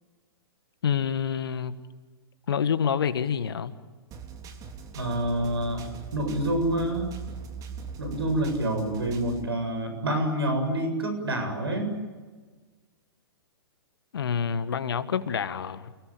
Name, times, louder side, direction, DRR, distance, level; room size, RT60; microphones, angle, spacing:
voice 1, 0.8-1.8 2.5-3.7 14.1-15.9, left 7 dB, 70° left, 13 dB, 1.6 m, -27 dB
sound 1, 4.1-9.5, right 5 dB, 30° right, 3.4 m, -40 dB
voice 2, 4.9-5.9 6.1-7.1 8.0-11.9, right 1 dB, 80° right, 6 dB, 7.5 m, -27 dB
29.5 x 19.0 x 9.1 m, 1.4 s
hypercardioid pair, 115°, 13 cm